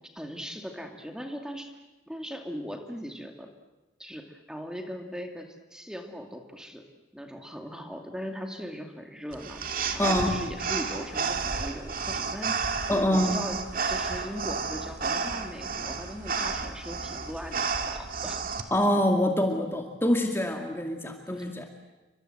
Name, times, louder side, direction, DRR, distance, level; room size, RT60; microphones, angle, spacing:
voice 1, 0.2-1.7 2.1-3.5 4.0-6.8 7.1-12.7 13.0-13.6 13.9-18.5 21.3-21.4, equal, 5° right, 3 dB, 2.4 m, -39 dB
sound 1, 9.3-18.6, right 5 dB, 50° right, 2.3 m, -31 dB
voice 2, 10.0-10.3 12.9-13.4 18.7-21.6, left 1 dB, 15° left, 3 dB, 2.2 m, -25 dB
30.0 x 25.0 x 7.9 m, 1.1 s
head